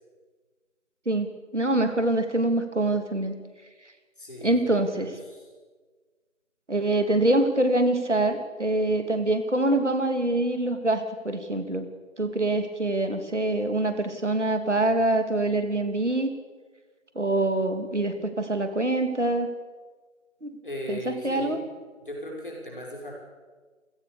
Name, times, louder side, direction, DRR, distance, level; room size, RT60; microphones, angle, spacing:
voice 1, 1.0-3.3 4.4-5.2 6.7-11.9 12.2-16.3 17.1-19.5 20.4-20.5 20.9-21.6, right 2 dB, 60° right, 7 dB, 3.2 m, -25 dB
voice 2, 4.2-5.4 20.6-21.6 22.0-23.2, left 1 dB, 40° left, -1 dB, 6.0 m, -38 dB
28.5 x 17.0 x 6.9 m, 1.4 s
figure-of-eight pair, 170°, 40 cm